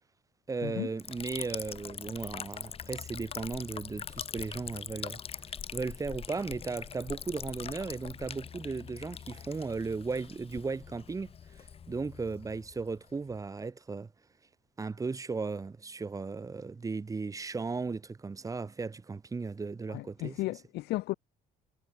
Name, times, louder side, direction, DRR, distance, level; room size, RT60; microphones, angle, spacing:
voice 1, 0.5-5.2 5.7-11.3 11.9-14.1 14.8-20.4, right 4 dB, 20° right, 0.9 m, -36 dB
Liquid, 1.0-13.4, left 7 dB, 35° left, 0.8 m, -43 dB
voice 2, 19.9-21.1, left 18 dB, 75° left, 0.6 m, -34 dB
cardioid pair, 110°, 17 cm